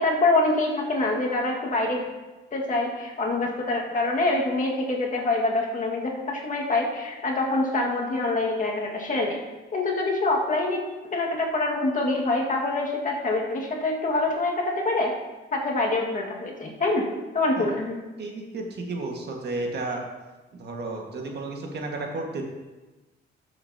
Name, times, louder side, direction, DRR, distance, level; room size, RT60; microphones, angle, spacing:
voice 1, 0.0-2.0 2.5-9.4 9.7-15.1 15.5-17.1 17.3-18.0, left 2 dB, 40° left, -1 dB, 1.8 m, -25 dB
voice 2, 18.2-20.0 20.5-22.4, right 2 dB, 55° right, 1 dB, 1.7 m, -32 dB
13.0 x 7.1 x 2.8 m, 1.2 s
cardioid pair, 90°, 20 cm